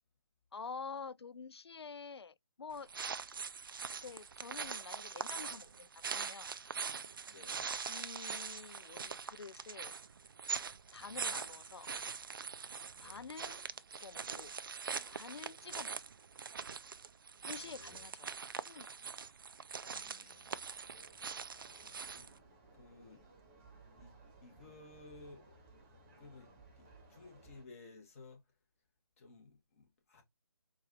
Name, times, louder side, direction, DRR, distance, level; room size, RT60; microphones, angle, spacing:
voice 1, 0.5-2.9 4.0-6.5 7.9-9.9 10.9-11.9 13.0-13.7 14.0-14.5 15.1-16.0 17.4-18.3 18.7-19.0, left 5 dB, 70° left, 0.4 m, -48 dB
sound 1, 2.7-22.4, right 6 dB, 55° right, 0.4 m, -43 dB
voice 2, 7.2-7.7 10.9-11.2 12.9-13.3 15.6-15.7 17.4-18.1 19.9-20.7 21.5-22.3 22.7-23.2 24.0-24.2 24.4-25.5 26.2-28.4 29.2-30.2, left 3 dB, 30° left, 1.4 m, -57 dB
sound 2, 20.7-27.7, right 3 dB, 20° right, 1.0 m, -61 dB
4.6 x 2.5 x 3.0 m
figure-of-eight pair, 150°, 14 cm